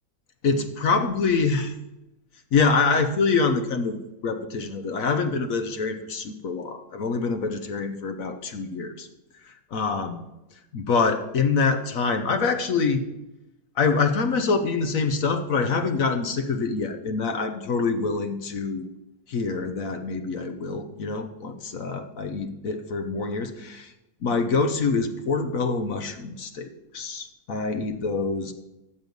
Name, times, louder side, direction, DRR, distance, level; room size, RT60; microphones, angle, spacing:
voice 1, 0.4-1.7 2.5-4.0 4.2-9.1 9.4-10.3 10.7-13.0 13.8-18.9 19.3-23.9 24.2-28.5, left 4 dB, 55° left, 8 dB, 1.2 m, -25 dB
13.0 x 7.9 x 5.3 m, 0.94 s
omnidirectional pair, 1.8 m